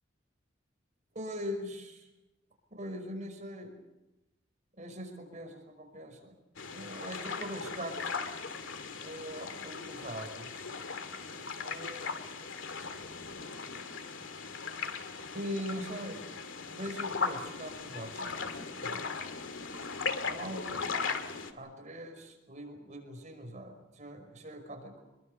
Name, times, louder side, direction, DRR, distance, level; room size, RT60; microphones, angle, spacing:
voice 1, 1.1-2.1 2.7-3.7 4.8-6.3 6.7-8.1 9.0-10.6 11.6-12.1 12.4-12.9 15.3-16.3 16.7-19.1 20.2-21.0 21.5-25.1, equal, 40° right, 5 dB, 5.4 m, -42 dB
sound 1, 6.6-21.5, left 5 dB, 80° left, 2.3 m, -38 dB
26.5 x 22.5 x 6.7 m, 0.99 s
head